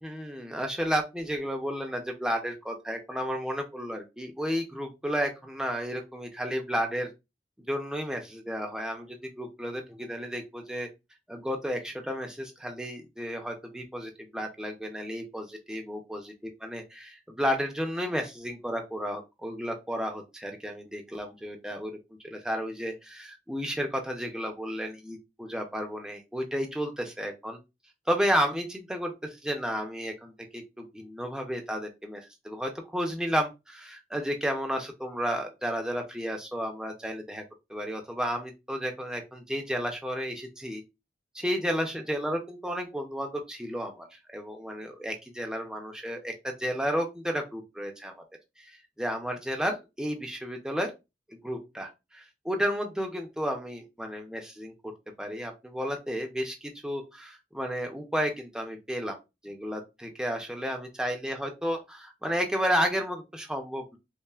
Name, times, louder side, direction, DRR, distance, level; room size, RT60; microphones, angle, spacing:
voice 1, 0.0-7.1 7.7-10.9 11.3-22.0 22.3-27.6 28.1-37.4 37.7-40.8 41.3-48.1 48.6-48.7 49.0-50.9 51.3-54.7 55.2-59.2 59.4-64.0, equal, 5° right, 3 dB, 0.5 m, -32 dB
5.4 x 2.1 x 2.3 m, 0.24 s
head